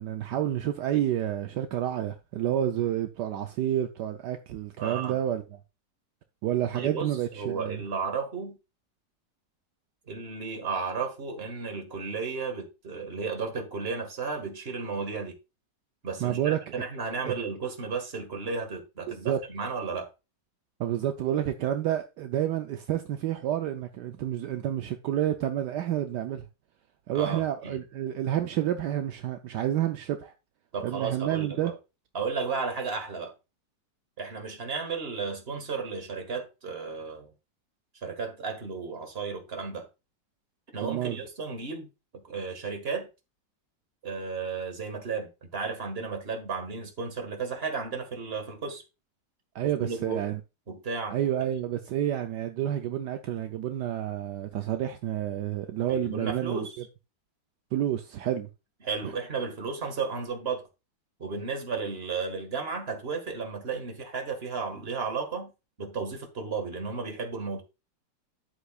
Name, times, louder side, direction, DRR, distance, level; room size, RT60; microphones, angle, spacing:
voice 1, 0.0-5.4 6.4-7.8 16.2-16.8 17.3-17.4 19.1-19.4 20.8-26.4 27.1-30.3 30.8-31.7 40.8-41.2 49.5-50.4 51.1-56.7 57.7-58.5 59.0-59.1, right 11 dB, 75° right, 1.2 m, -29 dB
voice 2, 4.8-5.2 6.7-8.6 10.1-15.4 16.0-20.1 27.1-27.8 30.7-31.7 32.1-33.3 34.2-37.3 38.0-39.9 40.7-43.1 44.0-48.8 49.8-50.3 50.7-51.2 55.9-56.8 58.8-60.6 61.2-65.5 65.8-67.6, right 5 dB, 35° right, 1.9 m, -34 dB
10.0 x 8.1 x 2.4 m
omnidirectional pair, 1.9 m